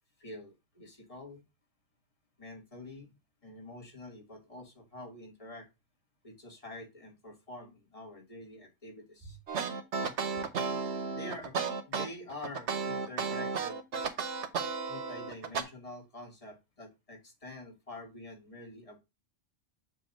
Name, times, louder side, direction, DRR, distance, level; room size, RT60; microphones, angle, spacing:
voice 1, 0.2-1.4 2.4-3.1 3.4-5.7 6.2-9.4 10.7-10.8 11.1-11.6 11.9-13.8 14.9-19.0, left 1 dB, 30° left, 2 dB, 1.5 m, -47 dB
sound 1, 9.5-15.6, right 5 dB, 70° right, 1.2 m, -33 dB
7.4 x 2.8 x 5.3 m, 0.24 s
omnidirectional pair, 1.2 m